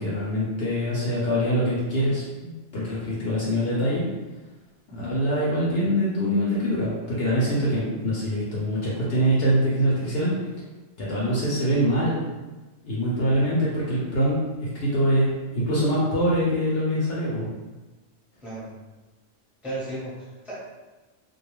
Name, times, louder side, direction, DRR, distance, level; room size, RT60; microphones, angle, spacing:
voice 1, 0.0-4.0 4.9-10.3 11.0-12.2 12.8-17.5, equal, 60° left, -6 dB, 0.8 m, -24 dB
voice 2, 19.6-20.6, right 1 dB, ahead, -9 dB, 0.8 m, -35 dB
2.3 x 2.3 x 3.1 m, 1.2 s
omnidirectional pair, 1.3 m